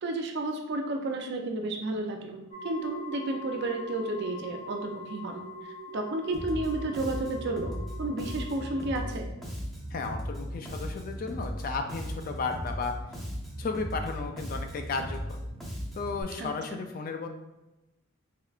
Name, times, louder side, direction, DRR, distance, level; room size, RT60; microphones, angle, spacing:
voice 1, 0.0-9.3 16.4-16.8, right 2 dB, 55° right, 3 dB, 0.4 m, -32 dB
sound 1, 2.5-9.0, equal, 85° right, 1.2 m, -43 dB
Bass guitar, 6.3-16.2, equal, ahead, 0.7 m, -37 dB
voice 2, 9.9-12.9 13.6-15.4 15.9-17.3, left 4 dB, 45° left, 5 dB, 0.3 m, -34 dB
3.6 x 3.2 x 2.4 m, 1.0 s
head